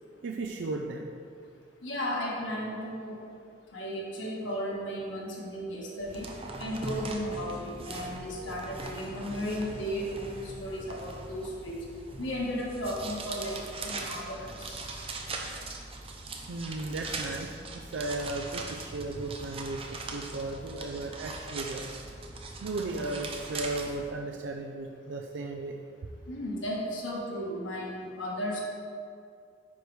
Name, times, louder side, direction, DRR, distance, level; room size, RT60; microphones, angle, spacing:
voice 1, 0.2-1.1 16.5-19.9 20.1-21.9 22.6-25.8, right 2 dB, 75° right, 2 dB, 0.4 m, -35 dB
voice 2, 1.8-3.2 3.7-6.3 6.6-11.8 12.2-13.5 13.8-15.0 26.3-28.6, equal, 90° left, -3 dB, 1.5 m, -35 dB
sound 1, 6.0-24.1, right 3 dB, 30° right, 0.6 m, -40 dB
9.5 x 4.6 x 3.3 m, 2.3 s
head